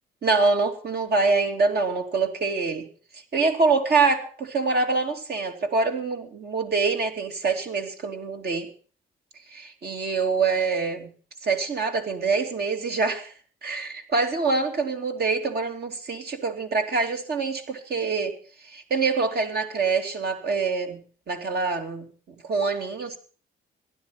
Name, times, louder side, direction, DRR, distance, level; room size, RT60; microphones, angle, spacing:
voice 1, 0.2-2.9 3.1-8.7 9.5-11.1 11.4-13.3 13.6-18.3 18.6-21.0 21.3-22.1 22.4-23.2, right 4 dB, 55° right, 4 dB, 2.8 m, -25 dB
16.0 x 12.0 x 5.8 m, 0.42 s
cardioid pair, 90°, 20 cm